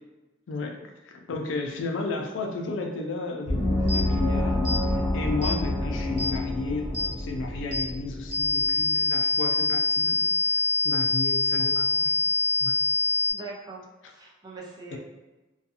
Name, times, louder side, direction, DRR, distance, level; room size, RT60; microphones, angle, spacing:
voice 1, 0.5-12.3 12.6-12.8 14.9-15.0, left 3 dB, 85° left, 3 dB, 0.4 m, -34 dB
Gong, 3.5-8.7, left 1 dB, 25° left, 0.6 m, -28 dB
sound 1, 3.9-4.0 4.7-4.8 5.4-5.6 6.2-6.3 6.9-7.1 7.7-7.9 8.3-13.3, left 2 dB, 60° right, 1.0 m, -25 dB
voice 2, 13.3-15.0, right 3 dB, 20° right, -4 dB, 0.5 m, -42 dB
2.4 x 2.3 x 2.7 m, 1.1 s
head